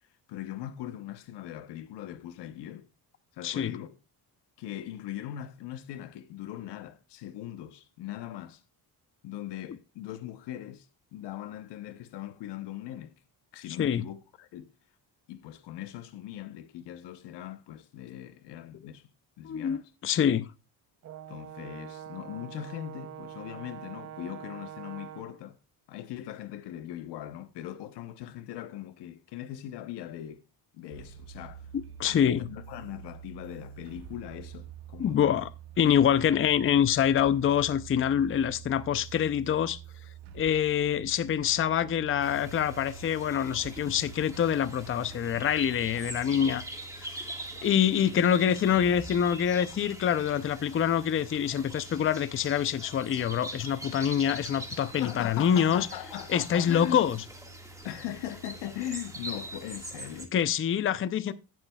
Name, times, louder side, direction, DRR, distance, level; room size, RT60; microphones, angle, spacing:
voice 1, 0.3-2.9 3.3-3.9 4.6-8.6 9.2-13.1 13.5-14.7 15.3-19.1 19.4-19.9 21.3-25.6 25.9-30.4 30.7-31.7 32.0-35.4 55.0-57.2 57.8-60.3, left 12 dB, 85° left, 1.0 m, -40 dB
voice 2, 3.4-3.8 13.8-14.0 19.4-20.5 32.0-32.4 35.0-35.5 35.8-39.8 40.3-46.6 47.0-47.1 47.6-55.9 56.3-57.2 60.3-61.3, left 9 dB, 30° left, 0.5 m, -25 dB
Brass instrument, 21.0-25.4, right 10 dB, 40° right, 0.6 m, -44 dB
sound 1, 30.9-46.6, right 9 dB, 85° right, 1.6 m, -46 dB
sound 2, 42.2-60.3, right 1 dB, 10° right, 1.7 m, -43 dB
17.0 x 7.6 x 2.3 m
cardioid pair, 120°, 40 cm